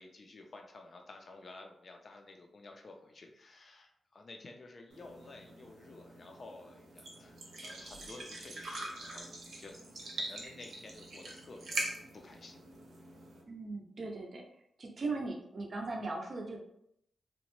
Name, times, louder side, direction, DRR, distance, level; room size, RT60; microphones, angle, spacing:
voice 1, 0.0-7.4 7.6-12.7, left 2 dB, 50° left, 3 dB, 0.4 m, -52 dB
sound 1, 4.9-13.4, right 2 dB, 80° right, 0.7 m, -43 dB
voice 2, 13.5-14.4 14.8-16.6, right 3 dB, 45° right, 1 dB, 0.5 m, -38 dB
2.8 x 2.1 x 3.0 m, 0.74 s
cardioid pair, 95°, 0 cm